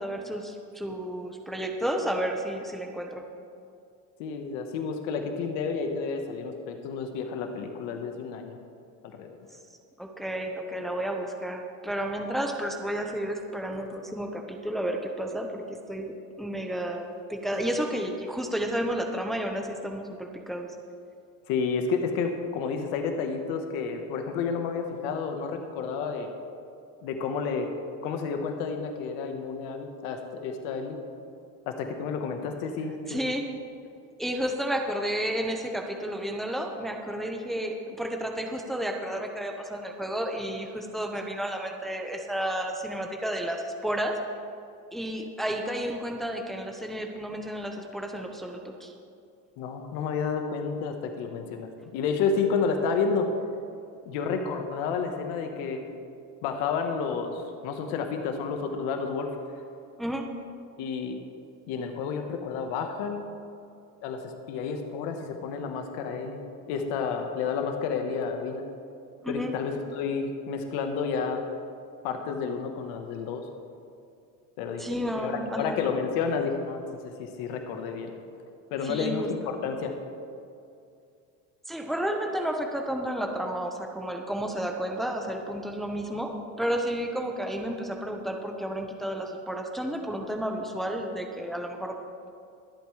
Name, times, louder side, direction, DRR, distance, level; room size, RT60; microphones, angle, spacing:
voice 1, 0.0-3.2 10.0-20.7 33.1-33.5 34.2-44.2 44.9-48.9 60.0-60.3 69.2-69.5 74.8-75.8 78.8-79.5 81.7-92.0, equal, ahead, 2 dB, 1.1 m, -32 dB
voice 2, 4.2-8.6 9.0-9.4 21.5-26.3 27.0-27.7 28.0-31.0 31.7-33.2 49.6-53.3 54.0-55.9 56.4-59.4 60.8-61.2 61.7-63.2 64.0-66.4 66.7-68.6 69.3-71.4 72.0-73.5 74.6-78.1 78.7-79.3 79.6-79.9, left 5 dB, 80° left, 4 dB, 1.3 m, -30 dB
24.5 x 8.4 x 3.3 m, 2.4 s
supercardioid pair, 110°, 35 cm